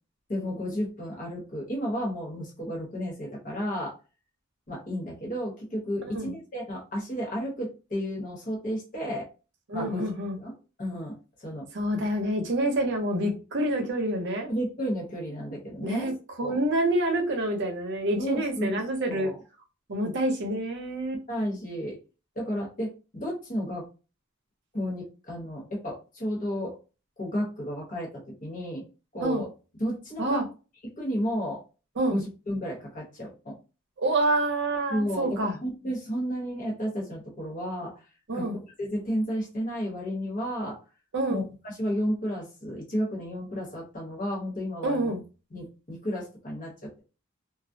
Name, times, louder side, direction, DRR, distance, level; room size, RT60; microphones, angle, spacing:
voice 1, 0.3-3.9 4.7-9.3 9.7-10.1 10.4-10.5 10.8-11.7 14.5-16.1 16.4-16.6 18.2-19.4 21.3-22.0 22.3-23.8 24.7-26.8 27.2-28.8 29.1-29.5 29.8-30.4 30.8-31.6 32.1-33.6 34.9-38.0 38.3-38.4 38.8-40.8 41.3-45.1 45.5-47.0, equal, 40° left, -2 dB, 1.0 m, -32 dB
voice 2, 9.7-10.4 11.7-14.5 15.8-16.1 16.4-19.3 19.9-21.2 29.2-29.4 30.2-30.4 32.0-32.2 34.0-35.5 38.3-38.6 41.1-41.4 44.8-45.2, right 1 dB, 60° right, 3 dB, 0.7 m, -27 dB
2.3 x 2.0 x 2.6 m, 0.32 s
head